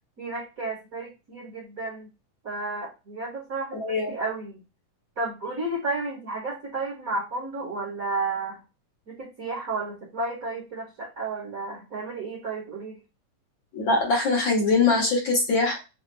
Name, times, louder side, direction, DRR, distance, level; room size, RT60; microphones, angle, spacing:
voice 1, 0.2-2.1 2.4-4.6 5.2-8.6 9.1-13.0, right 3 dB, 45° right, -5 dB, 1.1 m, -32 dB
voice 2, 3.8-4.1 13.7-15.8, left 3 dB, 55° left, -1 dB, 1.4 m, -22 dB
7.9 x 2.9 x 2.2 m, 0.27 s
omnidirectional pair, 3.7 m